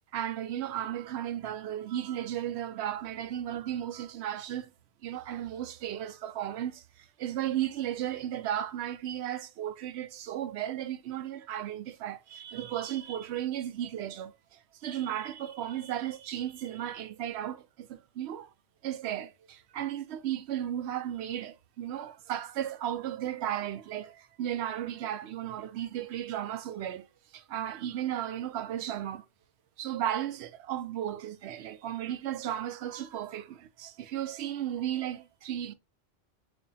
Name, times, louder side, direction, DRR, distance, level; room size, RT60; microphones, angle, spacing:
voice 1, 0.1-4.7 5.0-18.5 18.8-27.1 27.3-29.3 29.8-35.7, right 11 dB, 70° right, 0.8 m, -35 dB
4.3 x 2.8 x 2.7 m
omnidirectional pair, 1.2 m